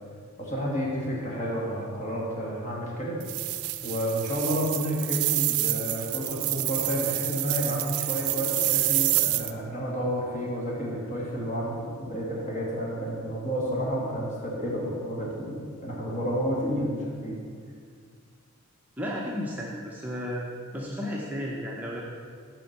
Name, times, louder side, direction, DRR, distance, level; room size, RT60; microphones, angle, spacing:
voice 1, 0.4-3.2 3.8-17.4, equal, 35° left, -4 dB, 1.8 m, -30 dB
sound 1, 3.2-9.5, right 17 dB, 85° right, 0.4 m, -28 dB
voice 2, 19.0-20.5 20.7-22.0, equal, 10° right, -4 dB, 0.6 m, -33 dB
7.2 x 4.3 x 6.5 m, 2.1 s
head